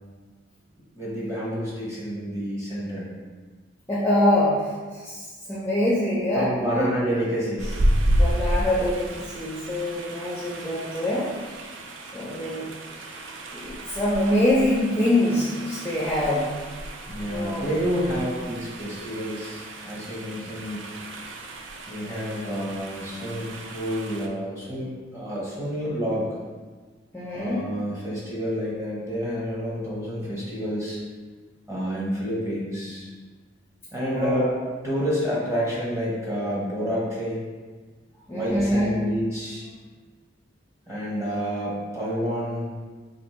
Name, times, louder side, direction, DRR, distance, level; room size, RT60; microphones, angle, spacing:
voice 1, 0.9-3.1 6.3-7.9 17.1-20.9 21.9-26.3 27.3-31.0 31.7-33.1 33.9-34.5 34.8-37.4 38.3-39.6 40.9-42.7, equal, 15° right, -7 dB, 0.9 m, -29 dB
voice 2, 3.9-6.9 8.1-11.3 12.1-12.7 13.5-16.5 17.3-17.7 27.1-27.6 34.1-34.5 38.3-39.0, left 1 dB, 10° left, -7 dB, 0.4 m, -24 dB
sound 1, 7.6-24.3, right 1 dB, 85° right, 0.4 m, -31 dB
2.9 x 2.6 x 4.2 m, 1.4 s
head